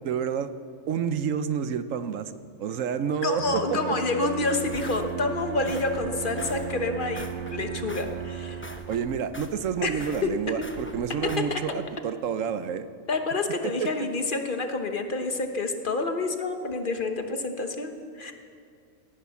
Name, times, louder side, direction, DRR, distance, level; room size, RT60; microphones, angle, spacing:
voice 1, 0.0-0.5 0.9-2.3 2.6-3.9 8.9-12.9 13.6-13.9, right 7 dB, 75° right, 12 dB, 1.1 m, -29 dB
voice 2, 3.2-8.6 9.8-10.3 11.2-11.6 13.1-18.3, left 3 dB, 40° left, 6 dB, 1.2 m, -28 dB
Bowed string instrument, 3.4-9.2, right 9 dB, 50° right, 0.5 m, -36 dB
sound 1, 4.2-11.4, left 1 dB, 10° left, 0.6 m, -44 dB
17.5 x 10.5 x 7.1 m, 2.2 s
omnidirectional pair, 1.4 m